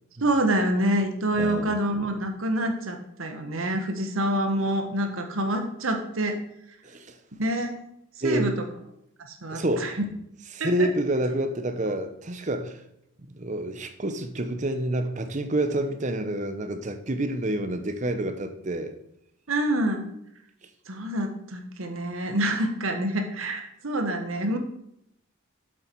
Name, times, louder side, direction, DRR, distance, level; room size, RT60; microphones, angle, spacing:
voice 1, 0.2-6.4 7.4-7.8 8.2-8.5 9.4-9.9 10.6-10.9 19.5-20.1 20.9-24.6, right 1 dB, 80° right, 5 dB, 1.3 m, -26 dB
voice 2, 1.4-1.8 6.8-7.2 8.2-8.6 9.5-9.9 10.5-12.8 13.3-18.9, right 1 dB, 35° right, 8 dB, 0.8 m, -28 dB
7.9 x 7.6 x 4.6 m, 0.77 s
head